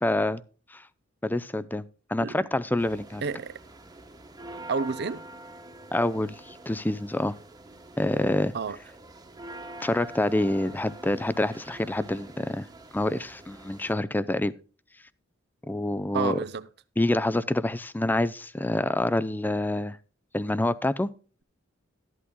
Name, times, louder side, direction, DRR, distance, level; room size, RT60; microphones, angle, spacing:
voice 1, 0.0-0.4 0.7-0.8 1.2-3.2 5.9-7.3 8.0-8.5 9.8-12.7 12.9-14.5 15.7-16.4 17.0-20.0 20.3-21.1, left 1 dB, 10° left, 0.5 m, -27 dB
sound 1, 2.8-13.9, right 1 dB, 20° right, 1.2 m, -46 dB
voice 2, 3.2-3.6 4.7-5.2 8.5-8.8 16.1-16.7, right 5 dB, 55° right, 0.6 m, -30 dB
13.0 x 11.0 x 2.2 m
head